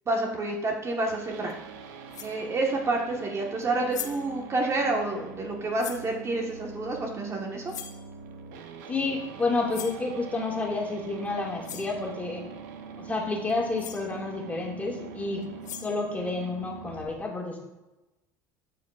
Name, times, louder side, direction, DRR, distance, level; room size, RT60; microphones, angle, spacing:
voice 1, 0.1-1.5 2.2-7.7, right 2 dB, 30° right, 0 dB, 1.4 m, -29 dB
sound 1, 1.1-17.1, right 6 dB, 75° right, 0.7 m, -43 dB
sound 2, 1.5-1.6 2.1-2.4 3.6-3.7 3.9-4.3 5.8-6.1 7.7-8.0 9.7-10.0 11.3-11.4 11.6-12.0 13.5-13.6 13.8-14.1 15.4-16.1, left 10 dB, 90° left, 0.7 m, -40 dB
voice 2, 8.9-12.4 13.0-15.4 15.8-17.6, left 3 dB, 15° left, -2 dB, 2.1 m, -30 dB
12.5 x 4.8 x 2.4 m, 1.0 s
hypercardioid pair, 80°, 9 cm